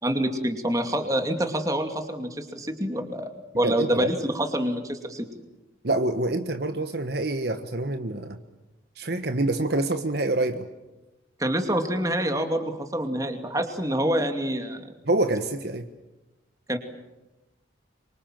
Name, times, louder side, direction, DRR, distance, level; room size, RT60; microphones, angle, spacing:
voice 1, 0.0-5.3 11.4-14.9 16.7-16.8, right 1 dB, 20° right, 6 dB, 2.6 m, -26 dB
voice 2, 3.6-4.1 5.8-8.4 9.0-10.6 15.1-15.9, right 2 dB, 55° right, 8 dB, 1.3 m, -26 dB
26.0 x 24.5 x 7.6 m, 1.0 s
head